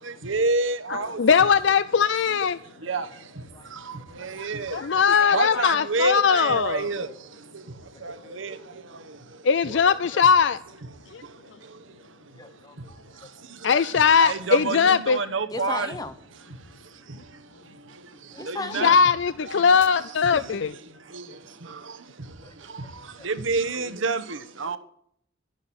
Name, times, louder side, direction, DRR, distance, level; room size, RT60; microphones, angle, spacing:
voice 1, 0.2-1.2 2.9-3.0 4.2-4.8 5.3-7.1 8.0-8.5 14.2-15.9 18.5-18.9 21.1-21.2 23.2-24.8, right 3 dB, 85° right, 1.2 m, -27 dB
voice 2, 0.9-2.6 4.7-6.9 9.4-10.6 11.1-11.2 13.6-15.2 18.8-20.8, left 6 dB, 65° left, 0.5 m, -20 dB
voice 3, 2.8-3.2 3.5-3.7 7.9-8.4 9.7-10.2 12.4-13.3 15.5-16.1 18.3-19.0 22.4-22.5 22.8-23.3, left 3 dB, 20° left, 0.9 m, -38 dB
12.0 x 10.5 x 8.7 m
head